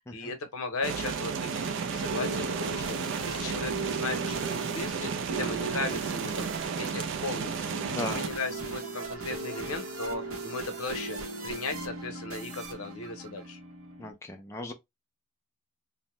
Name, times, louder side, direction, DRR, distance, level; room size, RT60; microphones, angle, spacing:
voice 1, 0.1-3.0 3.2-13.6, left 3 dB, 80° left, 0.7 m, -37 dB
sound 1, 0.8-8.3, right 6 dB, 60° right, 0.4 m, -33 dB
sound 2, 1.8-14.1, right 3 dB, 75° right, 0.9 m, -38 dB
voice 2, 7.8-8.2 14.0-14.7, left 2 dB, 15° left, 0.3 m, -37 dB
2.6 x 2.1 x 3.0 m
head